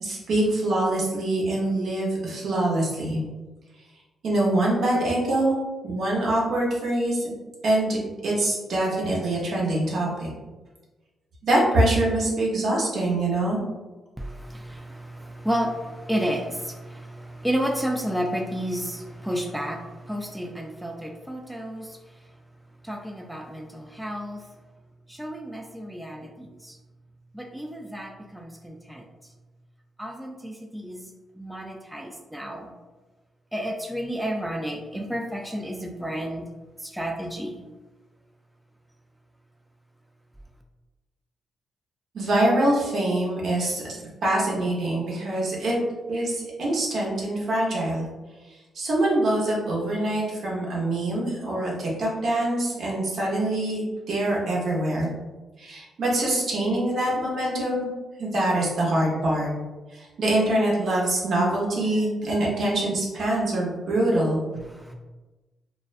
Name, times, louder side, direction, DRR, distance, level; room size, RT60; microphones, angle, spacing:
voice 1, 0.0-3.2 4.2-5.6 5.8-7.3 7.6-10.3 11.4-13.6 42.1-45.8 46.1-48.1 48.7-55.1 55.6-57.9 58.2-59.5 59.9-64.4, right 1 dB, 70° right, -4 dB, 0.8 m, -24 dB
voice 2, 14.2-22.0 22.8-24.4 25.1-26.8 27.3-29.1 30.0-31.1 31.4-32.7 33.5-36.5 36.8-37.6 64.6-64.9, equal, 5° right, 1 dB, 0.3 m, -31 dB
2.4 x 2.1 x 2.4 m, 1.2 s
cardioid pair, 70°, 0 cm